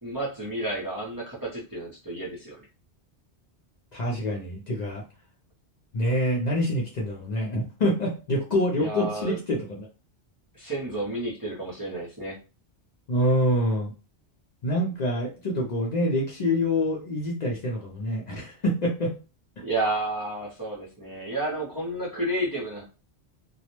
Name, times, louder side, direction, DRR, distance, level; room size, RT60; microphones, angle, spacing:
voice 1, 0.0-2.7 8.8-9.4 10.5-12.4 19.6-22.8, right 1 dB, 25° right, -5 dB, 0.5 m, -31 dB
voice 2, 3.9-5.0 5.9-9.9 13.1-13.9 14.6-19.2, left 1 dB, 50° left, -2 dB, 0.6 m, -26 dB
2.2 x 2.0 x 2.9 m, 0.33 s
omnidirectional pair, 1.1 m